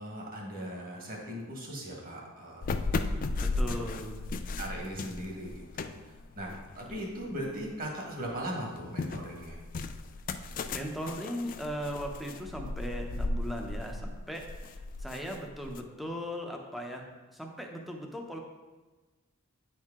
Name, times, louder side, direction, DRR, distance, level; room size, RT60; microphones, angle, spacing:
voice 1, 0.0-2.6 3.6-3.9 4.6-9.6, equal, 45° right, -1 dB, 1.6 m, -39 dB
sound 1, 2.6-7.8 8.2-15.8, left 3 dB, 40° left, 0.3 m, -35 dB
voice 2, 3.4-4.2 10.7-14.4 14.7-18.4, equal, ahead, 1 dB, 0.7 m, -38 dB
9.1 x 4.6 x 3.6 m, 1.2 s
head